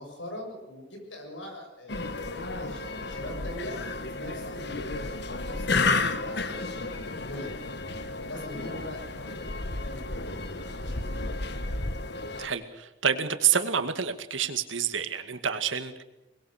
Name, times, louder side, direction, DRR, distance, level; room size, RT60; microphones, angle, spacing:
voice 1, 0.0-3.8 4.1-7.7 8.2-11.4, left 1 dB, 75° left, 3 dB, 7.2 m, -42 dB
sound 1, 1.9-12.5, left 3 dB, 60° left, 1.4 m, -32 dB
voice 2, 12.4-16.0, right 8 dB, 90° right, 8 dB, 2.1 m, -28 dB
23.5 x 20.5 x 6.7 m, 0.94 s
head